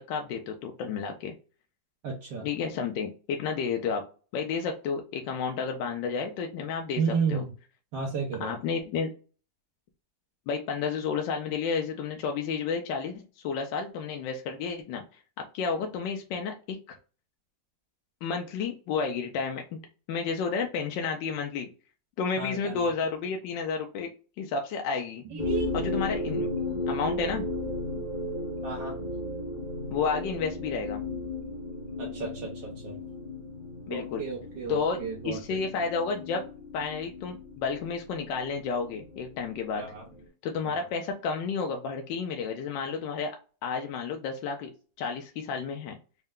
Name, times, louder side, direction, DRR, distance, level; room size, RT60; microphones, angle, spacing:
voice 1, 0.1-1.3 2.4-4.0 4.3-7.0 7.3-7.4 8.4-9.1 10.5-15.0 15.4-17.0 18.2-19.8 20.1-21.7 22.2-24.1 24.4-25.2 25.7-26.5 26.9-27.4 29.9-31.0 33.9-34.2 34.7-36.4 36.7-39.8 40.4-43.4 43.6-44.7 45.0-46.0, left 5 dB, 80° left, 3 dB, 1.3 m, -31 dB
voice 2, 2.0-2.5 7.0-7.5 7.9-8.5 22.4-22.9 25.3-25.7 28.6-29.0 32.0-33.0 33.9-35.4 39.7-40.1 40.6-40.7, right 5 dB, 75° right, -3 dB, 1.5 m, -32 dB
sound 1, 25.4-40.3, left 2 dB, 60° left, 0.4 m, -35 dB
4.3 x 2.1 x 3.6 m, 0.37 s
omnidirectional pair, 2.0 m